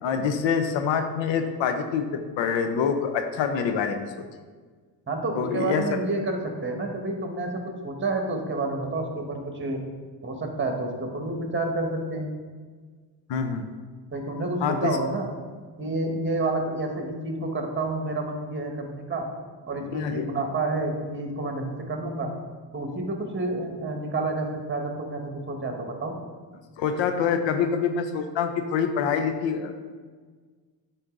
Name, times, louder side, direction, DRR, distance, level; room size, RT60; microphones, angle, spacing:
voice 1, 0.0-4.3 5.4-5.8 13.3-13.7 14.6-15.0 19.8-20.3 26.8-29.7, left 6 dB, 75° left, 7 dB, 0.8 m, -26 dB
voice 2, 5.1-9.8 10.2-12.3 14.1-15.3 15.8-19.3 19.7-22.3 22.7-26.1, right 2 dB, 25° right, 3 dB, 1.5 m, -29 dB
8.2 x 4.3 x 3.8 m, 1.5 s
supercardioid pair, 65°, 45 cm